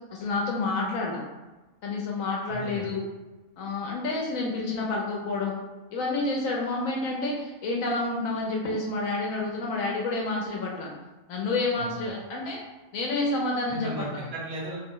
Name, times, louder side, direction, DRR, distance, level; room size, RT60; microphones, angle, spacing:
voice 1, 0.1-1.2 1.8-3.0 3.6-5.6 5.9-10.9 11.3-12.6 12.9-13.9, left 3 dB, 70° left, -2 dB, 0.9 m, -29 dB
voice 2, 2.5-3.0 11.8-12.2 13.7-14.8, right 1 dB, 55° right, -2 dB, 0.8 m, -36 dB
2.7 x 2.0 x 3.6 m, 1.1 s
omnidirectional pair, 1.5 m